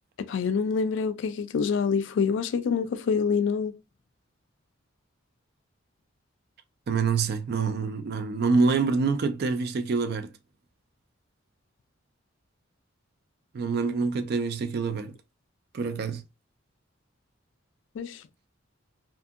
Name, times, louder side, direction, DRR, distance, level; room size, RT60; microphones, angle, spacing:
voice 1, 0.2-3.7 18.0-18.2, left 5 dB, 65° left, 0.3 m, -26 dB
voice 2, 6.9-10.3 13.5-15.1 15.7-16.2, right 4 dB, 55° right, 0.3 m, -26 dB
2.6 x 2.6 x 2.4 m
head